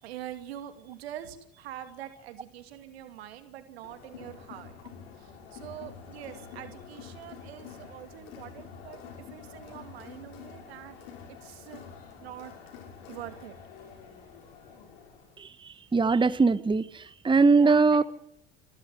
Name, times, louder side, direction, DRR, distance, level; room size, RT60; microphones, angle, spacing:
voice 1, 0.0-4.7 5.1-11.0 11.4-11.8 12.2-12.5 13.1-13.6 17.5-18.0, right 11 dB, 85° right, 9 dB, 2.6 m, -44 dB
Crowd, 3.8-15.4, left 7 dB, 75° left, 6.4 m, -47 dB
voice 2, 15.4-18.0, right 4 dB, 15° right, 15 dB, 1.1 m, -22 dB
27.0 x 13.5 x 7.8 m, 0.76 s
hypercardioid pair, 75°, 30 cm